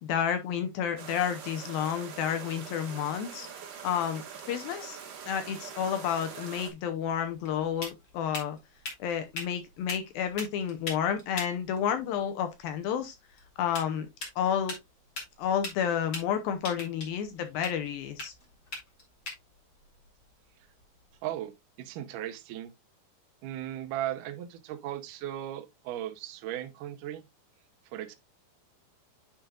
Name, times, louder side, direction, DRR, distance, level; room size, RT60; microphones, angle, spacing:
voice 1, 0.0-3.5 3.8-4.2 4.5-5.0 5.3-8.6 9.0-13.2 13.6-14.1 14.4-14.7 15.4-18.3, left 8 dB, 75° left, 2.4 m, -30 dB
sound 1, 1.0-6.7, right 7 dB, 60° right, 2.8 m, -44 dB
sound 2, 6.7-21.2, left 2 dB, 35° left, 1.9 m, -44 dB
voice 2, 21.2-22.7 23.4-27.2 27.9-28.1, right 12 dB, 80° right, 1.9 m, -37 dB
10.0 x 5.1 x 2.3 m
omnidirectional pair, 4.7 m